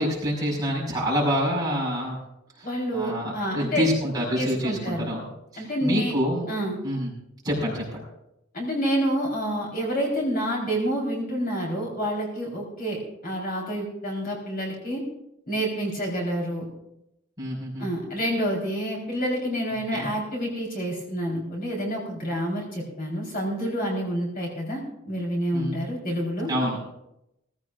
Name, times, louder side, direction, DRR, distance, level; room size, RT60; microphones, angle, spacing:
voice 1, 0.0-2.2 2.6-2.7 2.9-5.3 5.5-6.5 6.8-7.1 7.4-8.0 17.4-17.9 19.9-20.1 25.5-25.8 26.5-26.8, equal, 20° right, -4 dB, 5.4 m, -27 dB
voice 2, 2.6-3.9 4.4-5.1 5.6-6.2 6.5-6.8 8.5-15.0 15.5-16.7 17.8-26.5, equal, 45° left, -2 dB, 4.2 m, -28 dB
19.0 x 15.0 x 2.6 m, 0.84 s
head